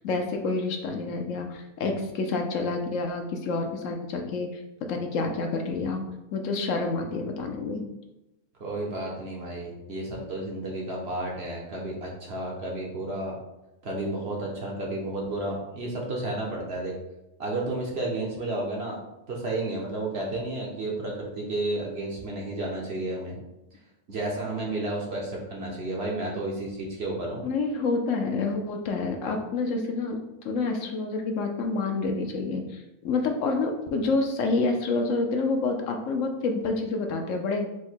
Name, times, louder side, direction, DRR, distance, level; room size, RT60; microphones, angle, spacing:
voice 1, 0.0-4.6 4.9-6.0 6.3-7.8 27.4-30.2 30.4-37.6, left 3 dB, 65° left, 4 dB, 0.9 m, -28 dB
voice 2, 8.6-13.4 13.8-16.9 17.4-19.0 19.3-23.4 24.1-27.4, right 2 dB, 50° right, -2 dB, 0.9 m, -32 dB
4.8 x 2.2 x 4.3 m, 0.93 s
omnidirectional pair, 1.6 m